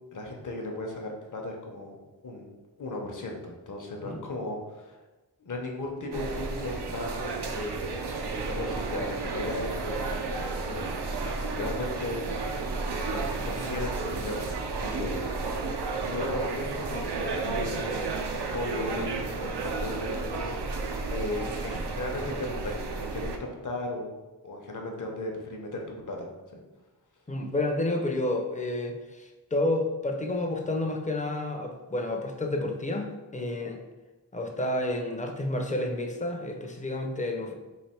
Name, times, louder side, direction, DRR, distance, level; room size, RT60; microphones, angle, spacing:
voice 1, 0.1-2.0 2.2-2.5 2.8-5.0 5.4-7.7 8.2-12.3 13.0-14.5 14.8-24.1 24.4-26.6, left 2 dB, 50° left, 1 dB, 0.8 m, -36 dB
sound 1, 6.1-23.4, right 3 dB, 80° right, 0.5 m, -32 dB
voice 2, 27.3-33.8 34.3-37.5, left 1 dB, 20° left, 3 dB, 0.5 m, -30 dB
3.2 x 2.6 x 4.3 m, 1.2 s
wide cardioid pair, 55°, 40 cm